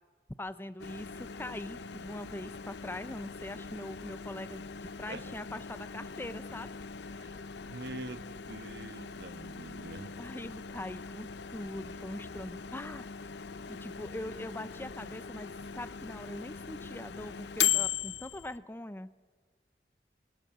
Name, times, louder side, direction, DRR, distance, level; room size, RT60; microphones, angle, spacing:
voice 1, 0.4-6.7 10.2-13.1 13.7-19.1, left 1 dB, 10° left, 13 dB, 0.5 m, -42 dB
Microwave oven, 0.8-18.6, left 8 dB, 70° left, 0.7 m, -39 dB
voice 2, 7.7-10.1, right 2 dB, 65° right, 10 dB, 1.1 m, -44 dB
22.5 x 20.0 x 7.4 m, 1.4 s
head